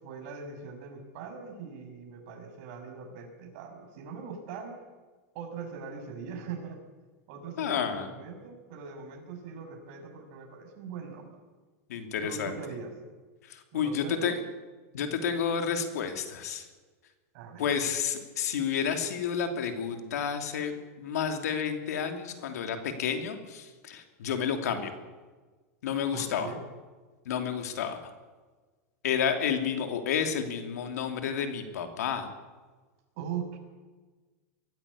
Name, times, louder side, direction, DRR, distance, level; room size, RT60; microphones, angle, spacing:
voice 1, 0.0-4.8 5.3-6.8 7.3-11.4 12.2-12.9 13.7-14.3 17.3-17.7 26.1-26.6 33.2-33.6, right 6 dB, 50° right, 3 dB, 6.1 m, -41 dB
voice 2, 7.6-8.1 11.9-12.6 13.4-14.3 14.9-16.7 17.6-24.9 25.8-26.5 27.2-28.0 29.0-32.3, left 7 dB, 85° left, 6 dB, 3.0 m, -30 dB
23.0 x 15.5 x 8.5 m, 1.3 s
supercardioid pair, 150°, 9 cm